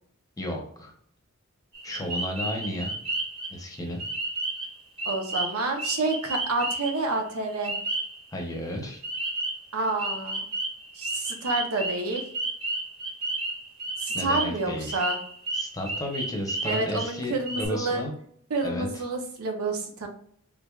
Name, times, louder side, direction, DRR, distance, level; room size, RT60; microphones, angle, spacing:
voice 1, 0.4-0.9 1.8-2.9 3.5-4.0 8.3-9.0 14.1-15.0 15.5-18.1 18.6-19.0, left 1 dB, 15° left, 1 dB, 0.8 m, -33 dB
sound 1, 1.7-3.5 4.0-4.7 5.0-7.0 7.6-8.2 9.0-9.7 10.0-14.6 14.9-17.2 17.5-17.7, right 2 dB, 25° right, 1.1 m, -32 dB
voice 2, 5.0-7.7 9.7-10.4 10.9-12.2 14.0-15.2 16.6-18.0 18.5-20.1, right 2 dB, 85° right, 3 dB, 0.8 m, -29 dB
3.7 x 3.3 x 2.4 m, 0.64 s
head